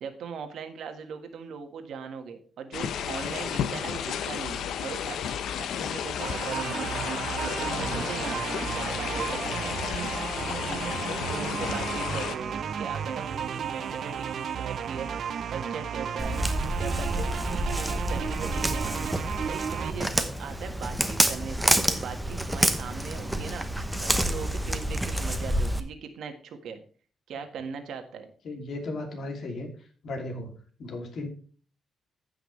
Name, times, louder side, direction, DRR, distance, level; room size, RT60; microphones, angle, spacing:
voice 1, 0.0-7.0 7.4-9.8 10.4-11.0 11.3-15.1 15.5-16.4 16.8-23.7 24.0-26.8 27.3-28.3, right 6 dB, 75° right, 6 dB, 1.6 m, -39 dB
sound 1, 2.7-12.4, left 8 dB, 85° left, 0.8 m, -32 dB
sound 2, 6.2-19.9, right 7 dB, 60° right, 0.7 m, -33 dB
voice 2, 7.7-8.2 28.4-29.8 30.0-31.3, left 2 dB, 60° left, 3 dB, 2.7 m, -36 dB
Walk footsteps, 16.2-25.8, right 1 dB, 5° right, 1.0 m, -28 dB
15.0 x 5.8 x 3.2 m, 0.42 s
cardioid pair, 130°, 0 cm